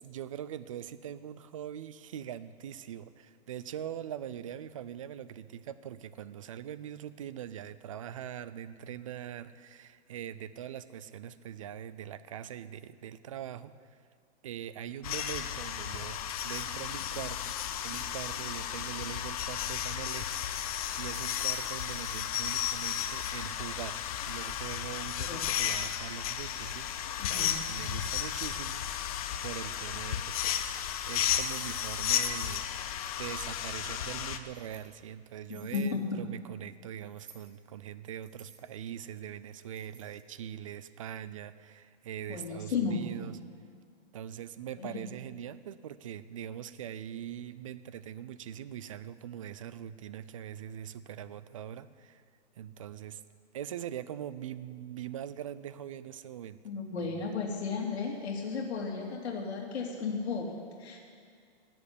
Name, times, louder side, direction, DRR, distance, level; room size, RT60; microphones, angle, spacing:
voice 1, 0.0-13.7 14.4-17.6 17.8-24.0 24.3-26.9 27.3-30.7 31.1-32.7 33.2-43.4 44.1-52.2 52.6-53.2 53.5-56.6 57.0-57.3, right 10 dB, 30° right, 15 dB, 0.4 m, -42 dB
sound 1, 15.0-34.4, left 10 dB, 35° left, 0.7 m, -34 dB
Keys jangling, 25.2-26.1 26.8-27.4 28.0-28.6 29.2-29.8 30.7-31.6 32.0-33.5 34.1-34.9 35.4-35.9 37.0-37.6 38.2-40.3, right 7 dB, 85° right, 2.6 m, -58 dB
voice 2, 27.2-27.6 35.5-36.0 42.3-43.0 44.8-45.0 56.6-61.0, left 5 dB, 70° left, 0 dB, 2.9 m, -34 dB
17.5 x 7.7 x 9.9 m, 2.2 s
hypercardioid pair, 165°, 33 cm